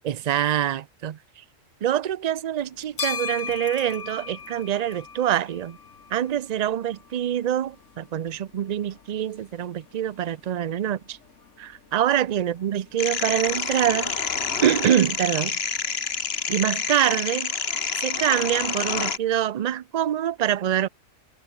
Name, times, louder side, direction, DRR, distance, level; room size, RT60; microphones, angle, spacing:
voice 1, 0.0-1.4 1.8-5.8 6.1-11.2 11.6-14.1 14.6-15.6 16.5-17.5 18.0-20.9, right 10 dB, 55° right, 0.4 m, -25 dB
sound 1, 2.6-16.5, left 5 dB, 75° left, 2.0 m, -41 dB
sound 2, 13.0-19.2, left 5 dB, 55° left, 1.6 m, -28 dB
omnidirectional pair, 1.3 m